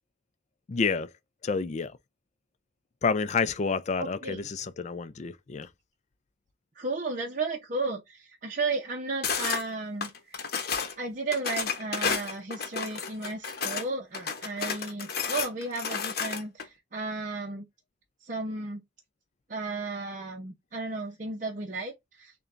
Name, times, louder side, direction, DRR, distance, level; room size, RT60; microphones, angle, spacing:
voice 1, 0.7-1.1 1.4-1.9 3.0-5.7, left 5 dB, 40° left, 0.4 m, -29 dB
voice 2, 4.0-4.4 6.8-10.4 11.0-17.7 18.2-18.8 19.5-22.5, right 3 dB, 45° right, 0.7 m, -34 dB
sound 1, 9.2-9.6 10.0-10.9 11.3-13.9 14.1-16.6, left 6 dB, 55° left, 0.8 m, -31 dB
6.7 x 2.3 x 2.5 m
head